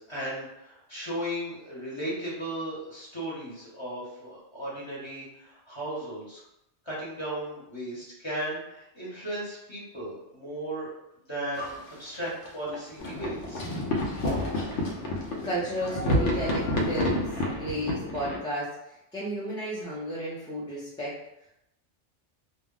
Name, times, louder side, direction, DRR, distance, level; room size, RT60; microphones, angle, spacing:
voice 1, 0.0-6.4 6.8-10.9 11.3-13.7, right 1 dB, 25° left, -7 dB, 0.9 m, -36 dB
Livestock farm animals working animals, 11.5-17.3, left 1 dB, 50° left, 0.6 m, -41 dB
sound 1, 13.0-18.4, left 1 dB, 75° left, 0.9 m, -29 dB
voice 2, 15.4-18.8 19.1-21.1, right 1 dB, 5° left, -8 dB, 0.5 m, -33 dB
2.2 x 2.1 x 3.7 m, 0.83 s
omnidirectional pair, 1.2 m